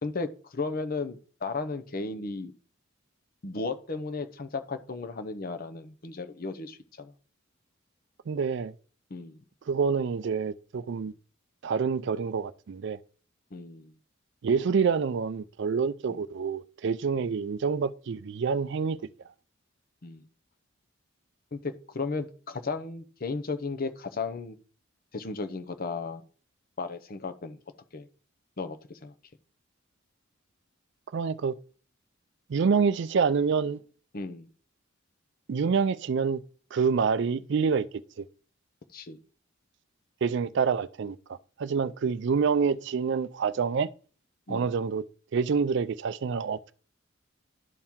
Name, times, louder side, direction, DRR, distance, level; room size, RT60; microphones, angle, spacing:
voice 1, 0.0-2.5 3.4-7.1 9.1-9.4 13.5-13.9 16.1-16.2 20.0-20.2 21.5-24.6 25.1-26.2 26.8-27.6 27.9-28.1 28.6-29.1 34.1-34.5 38.9-39.2 44.5-44.7, left 4 dB, 45° left, 0.7 m, -35 dB
voice 2, 8.3-8.7 9.7-11.1 11.6-13.0 14.4-19.0 31.1-31.5 32.5-33.8 35.5-36.4 36.7-37.9 38.2-38.3 40.2-41.2 41.6-43.9 44.5-45.1 45.3-46.7, right 5 dB, 60° right, 0.4 m, -27 dB
11.5 x 4.4 x 3.6 m
head